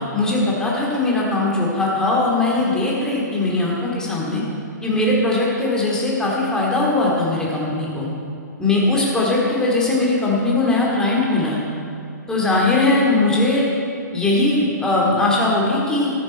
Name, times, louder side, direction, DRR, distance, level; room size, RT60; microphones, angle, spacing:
voice 1, 0.0-4.4 4.8-8.1 8.6-11.6 12.3-13.7 14.1-16.1, left 2 dB, 5° left, -4 dB, 2.5 m, -20 dB
14.0 x 11.5 x 4.4 m, 2.6 s
figure-of-eight pair, 120°, 10 cm